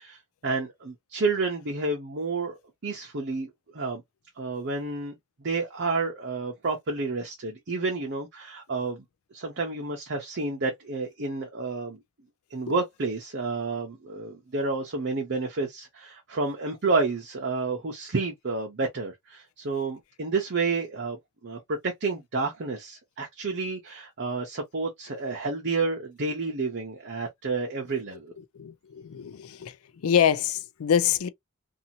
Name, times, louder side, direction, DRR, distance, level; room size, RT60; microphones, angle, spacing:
voice 1, 0.0-2.6 2.8-4.0 4.4-5.1 5.4-9.0 9.3-12.0 12.5-28.3, right 3 dB, 55° right, 0.7 m, -30 dB
voice 2, 28.5-29.8 30.0-31.3, left 8 dB, 80° left, 0.4 m, -25 dB
2.7 x 2.5 x 2.7 m
head